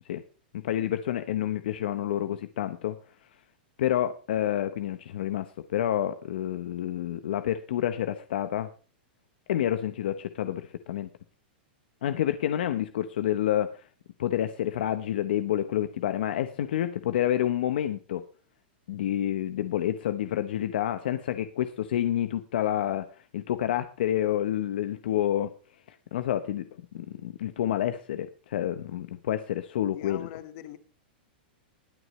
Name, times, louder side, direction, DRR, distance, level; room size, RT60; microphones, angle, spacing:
voice 1, 0.5-3.0 3.8-5.5 5.7-8.7 9.5-11.1 12.0-13.9 14.2-18.2 18.9-25.5 25.9-26.7 26.9-30.3, left 11 dB, 75° left, 10 dB, 1.0 m, -28 dB
voice 2, 29.8-30.8, left 12 dB, 50° left, 9 dB, 1.8 m, -43 dB
20.5 x 8.2 x 3.2 m, 0.37 s
hypercardioid pair, 140°, 5 cm